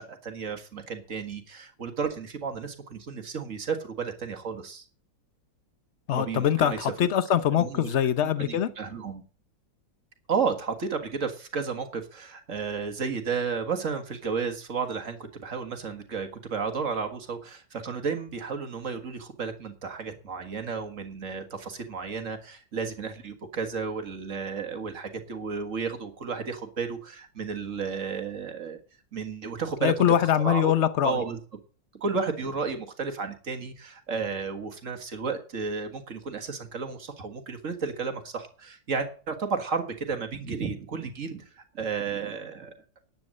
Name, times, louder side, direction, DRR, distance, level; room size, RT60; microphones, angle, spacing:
voice 1, 0.0-4.9 6.1-7.1 7.6-7.9 8.2-9.2 10.3-28.8 29.1-29.9 30.4-30.7 31.0-31.4 32.0-42.7, right 5 dB, 45° right, 1.8 m, -32 dB
voice 2, 6.1-8.7 29.8-31.2, left 10 dB, 55° left, 0.8 m, -23 dB
10.5 x 8.8 x 7.6 m
omnidirectional pair, 2.0 m